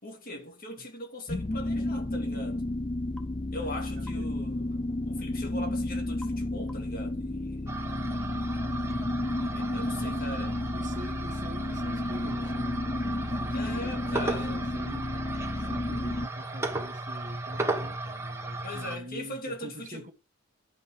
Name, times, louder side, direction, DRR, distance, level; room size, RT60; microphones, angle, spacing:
voice 1, 0.0-2.6 3.5-7.8 9.5-10.6 13.5-14.7 18.6-20.0, left 1 dB, 40° left, 2.4 m, -40 dB
sound 1, 1.3-16.3, left 1 dB, 20° left, 0.4 m, -32 dB
sound 2, 3.2-3.3 4.1-4.3 6.2-6.4 6.7-7.0, left 2 dB, 5° left, 0.9 m, -50 dB
voice 2, 3.5-4.3 9.7-20.1, right 1 dB, 35° right, 1.7 m, -46 dB
sound 3, 7.7-19.0, right 2 dB, 10° right, 1.5 m, -35 dB
11.0 x 5.3 x 5.8 m
head